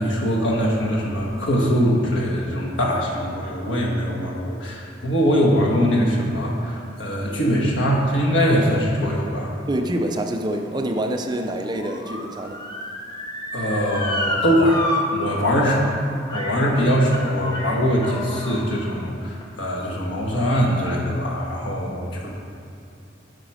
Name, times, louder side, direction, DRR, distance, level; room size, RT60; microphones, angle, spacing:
voice 1, 0.0-9.5 13.5-14.9 15.1-16.0 16.3-22.3, equal, 80° left, -3 dB, 1.5 m, -22 dB
voice 2, 9.7-12.7, right 1 dB, 25° right, 4 dB, 0.5 m, -26 dB
Motor vehicle (road) / Siren, 9.8-15.0 15.3-15.4 16.3-16.6 17.0-18.6 19.3-19.4, left 1 dB, 25° left, 0.9 m, -30 dB
9.0 x 4.9 x 4.9 m, 2.6 s
head